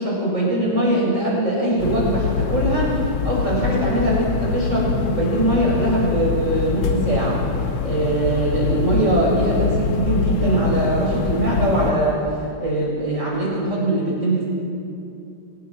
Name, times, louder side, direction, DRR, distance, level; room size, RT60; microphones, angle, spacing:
voice 1, 0.0-7.4 7.8-12.2 12.6-14.5, right 1 dB, 35° right, -4 dB, 7.5 m, -21 dB
sound 1, 1.8-11.9, left 6 dB, 85° left, 1.9 m, -24 dB
25.0 x 21.0 x 6.1 m, 2.5 s
omnidirectional pair, 2.3 m